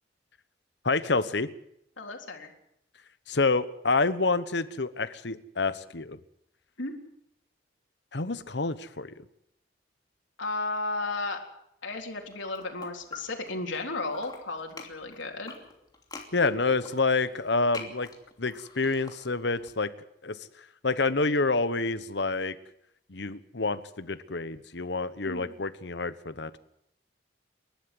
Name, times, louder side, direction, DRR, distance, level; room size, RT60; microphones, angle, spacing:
voice 1, 0.8-1.5 3.3-6.2 8.1-9.2 16.3-18.1 18.4-19.9 20.2-20.4 20.8-22.6 23.1-26.6, left 3 dB, 70° left, 13 dB, 1.2 m, -28 dB
voice 2, 2.0-2.5 6.8-6.9 10.4-11.4 11.8-15.6 25.3-25.5, left 3 dB, 85° left, 2 dB, 3.7 m, -34 dB
sound 1, 12.2-13.8 14.1-19.7, left 4 dB, 20° left, 2.9 m, -46 dB
29.5 x 12.0 x 7.8 m, 0.76 s
head